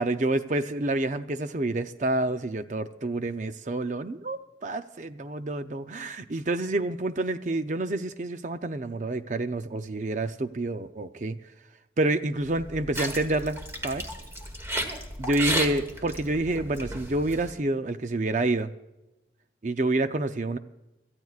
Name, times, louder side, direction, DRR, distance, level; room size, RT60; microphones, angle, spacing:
voice 1, 0.0-11.4 12.0-13.6 13.8-14.1 15.2-18.7 19.6-20.6, right 2 dB, 40° right, 10 dB, 0.5 m, -28 dB
sound 1, 12.4-17.5, equal, 15° right, 1.3 m, -34 dB
27.0 x 14.0 x 2.4 m, 0.98 s
head